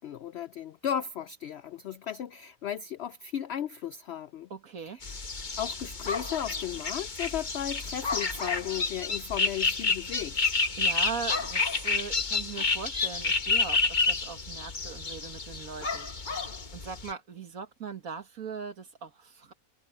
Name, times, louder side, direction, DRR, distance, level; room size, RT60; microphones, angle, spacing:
voice 1, 0.0-4.5 4.9-5.1 5.6-10.5, left 10 dB, 75° left, 0.6 m, -35 dB
voice 2, 4.5-5.0 10.8-16.5 16.7-19.5, right 6 dB, 65° right, 2.2 m, -40 dB
sound 1, 5.0-17.1, left 4 dB, 30° left, 1.3 m, -30 dB
omnidirectional pair, 1.6 m